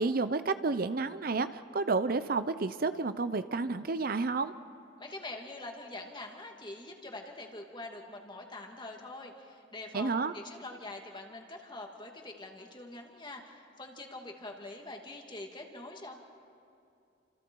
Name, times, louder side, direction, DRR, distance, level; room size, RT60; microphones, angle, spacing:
voice 1, 0.0-4.5 9.9-10.3, right 3 dB, 55° right, 12 dB, 0.7 m, -30 dB
voice 2, 5.0-16.2, left 2 dB, 25° left, 2 dB, 2.5 m, -44 dB
29.5 x 27.5 x 4.7 m, 2.7 s
head